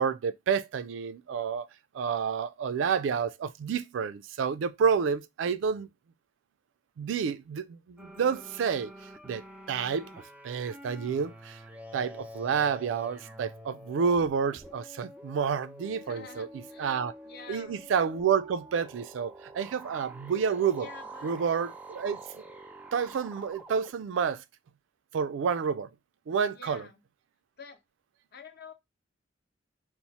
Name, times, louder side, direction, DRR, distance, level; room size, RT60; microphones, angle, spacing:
voice 1, 0.0-1.7 1.9-5.9 7.0-8.9 9.3-9.4 9.7-10.1 10.4-11.6 11.9-16.5 16.8-17.1 17.5-20.9 21.2-22.2 22.9-24.4 25.1-25.9 26.3-26.9, right 6 dB, 85° right, 0.3 m, -29 dB
sound 1, 8.0-23.9, right 1 dB, 10° right, 0.4 m, -47 dB
voice 2, 16.0-16.9 17.2-17.9 20.8-21.4 26.5-27.0 27.6-27.8 28.3-28.7, left 5 dB, 55° left, 0.7 m, -48 dB
2.9 x 2.0 x 4.0 m
head